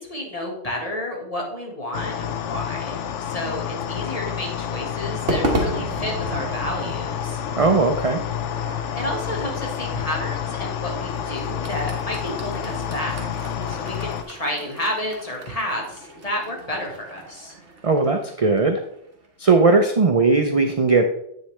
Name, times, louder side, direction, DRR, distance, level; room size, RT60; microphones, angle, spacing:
voice 1, 0.0-7.4 8.9-17.5, left 1 dB, 30° left, -1 dB, 1.7 m, -31 dB
sound 1, 1.9-14.2, left 8 dB, 75° left, 0.9 m, -29 dB
Crowd / Fireworks, 5.3-19.7, right 1 dB, 70° right, 1.8 m, -34 dB
voice 2, 7.6-8.2 17.8-18.8 19.4-21.0, right 3 dB, 40° right, 5 dB, 0.5 m, -18 dB
8.2 x 6.6 x 3.3 m, 0.72 s
omnidirectional pair, 1.2 m